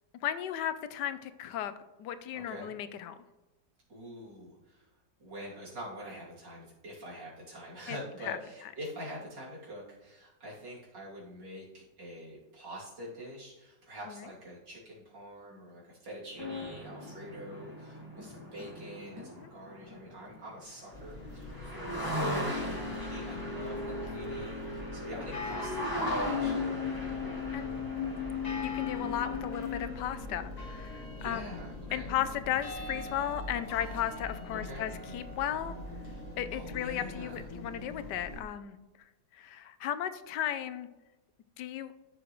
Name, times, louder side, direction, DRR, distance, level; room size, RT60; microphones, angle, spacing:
voice 1, 0.2-1.7 2.0-3.2 7.9-8.0 8.2-8.4 14.1-14.2 19.4-19.5 27.2-27.7 28.6-31.6 31.9-35.7 36.4-38.8 39.3-40.9 41.6-41.9, left 10 dB, 75° left, 11 dB, 1.2 m, -35 dB
voice 2, 2.3-2.7 3.9-4.9 5.2-26.7 31.2-32.2 34.6-34.9 36.1-37.4, equal, 75° right, -6 dB, 3.5 m, -45 dB
sound 1, 16.4-20.5 21.0-21.1 21.3-30.4, left 3 dB, 10° right, 1.8 m, -36 dB
sound 2, 20.9-38.4, left 2 dB, 25° left, 1.2 m, -43 dB
14.0 x 6.2 x 3.1 m, 1.1 s
omnidirectional pair, 1.9 m